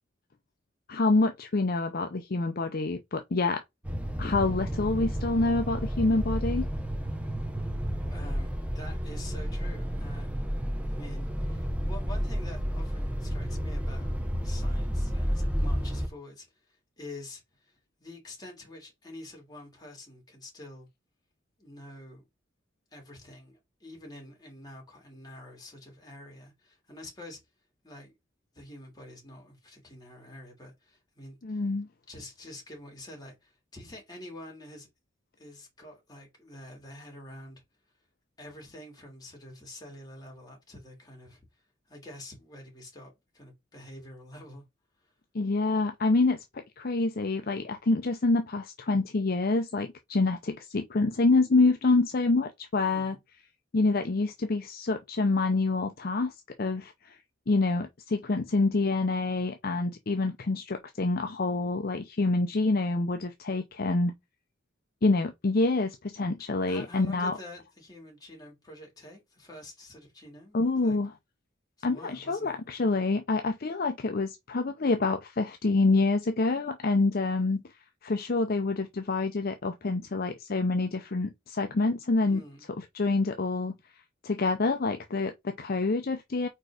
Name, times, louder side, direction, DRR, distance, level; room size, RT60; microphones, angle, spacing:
voice 1, 0.9-3.6 4.2-6.7 31.4-31.9 45.3-53.2 53.7-56.3 56.6-57.2 57.5-64.1 65.0-67.3 70.5-71.1 71.8-77.6 78.0-82.4 82.9-83.7 84.2-86.5, left 3 dB, 50° left, 0.6 m, -27 dB
sound 1, 3.8-16.1, equal, 5° right, 0.8 m, -31 dB
voice 2, 8.1-10.3 10.8-14.1 14.4-20.9 21.6-22.2 22.9-27.4 27.8-28.1 28.5-31.6 32.1-34.9 35.4-37.6 38.4-41.4 41.9-44.6 45.0-45.1 52.8-53.2 66.4-71.0 71.8-72.6 82.3-82.7, left 1 dB, 20° left, 2.9 m, -47 dB
4.5 x 4.5 x 4.8 m
head